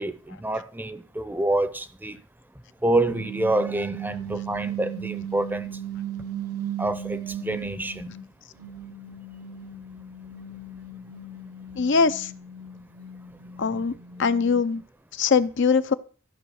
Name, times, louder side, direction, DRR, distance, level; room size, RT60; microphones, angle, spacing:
voice 1, 0.0-2.2 2.8-5.8 6.8-8.2, right 1 dB, 10° right, 0.7 m, -27 dB
sound 1, 3.0-8.2 8.6-14.8, right 7 dB, 85° right, 1.2 m, -36 dB
voice 2, 11.8-12.3 13.6-13.9 14.2-14.8 15.2-15.9, left 5 dB, 55° left, 0.6 m, -21 dB
14.5 x 6.2 x 6.4 m
head